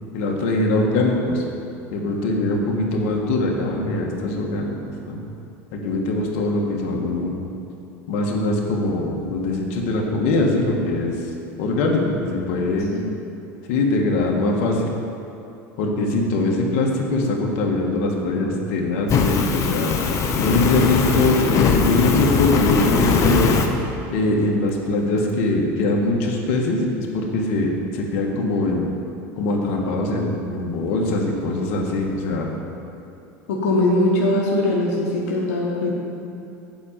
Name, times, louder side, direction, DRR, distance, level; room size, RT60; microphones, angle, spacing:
voice 1, 0.1-1.4 1.9-4.7 5.1-5.2 5.7-7.4 8.1-11.1 11.6-12.9 13.7-14.9 15.8-19.9 20.4-23.5 24.1-28.9 29.4-32.5, left 2 dB, 70° left, 0 dB, 1.4 m, -22 dB
Fire, 19.1-23.7, left 5 dB, 40° left, 0.8 m, -20 dB
voice 2, 33.5-35.9, left 1 dB, 85° left, -3 dB, 1.2 m, -21 dB
7.9 x 5.0 x 7.3 m, 2.7 s
supercardioid pair, 110°, 8 cm